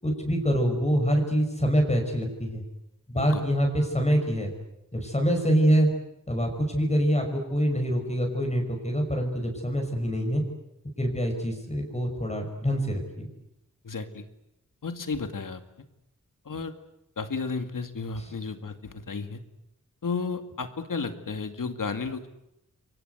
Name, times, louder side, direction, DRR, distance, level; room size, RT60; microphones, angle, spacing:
voice 1, 0.0-2.6 3.1-4.5 4.9-5.9 6.3-10.4 11.0-13.3 18.2-18.3, equal, 20° left, 2 dB, 5.9 m, -25 dB
voice 2, 13.8-14.2 14.8-15.9 16.5-16.7 17.2-19.4 20.0-22.3, left 4 dB, 85° left, 8 dB, 2.2 m, -33 dB
29.0 x 23.5 x 8.1 m, 0.85 s
wide cardioid pair, 80°, 31 cm